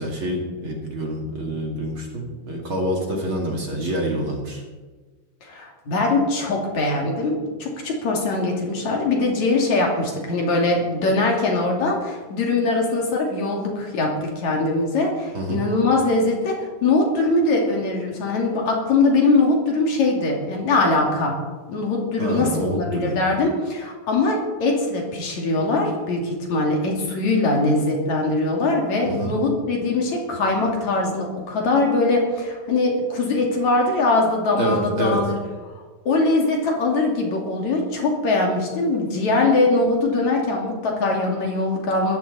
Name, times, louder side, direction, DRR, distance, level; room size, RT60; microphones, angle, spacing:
voice 1, 0.0-4.6 15.3-15.6 22.2-23.2 29.0-29.3 34.6-35.2, right 1 dB, 40° right, 0 dB, 3.0 m, -26 dB
voice 2, 5.4-21.4 21.7-35.3 36.1-42.2, left 2 dB, 60° left, 0 dB, 3.8 m, -22 dB
20.0 x 14.5 x 4.2 m, 1.3 s
omnidirectional pair, 3.6 m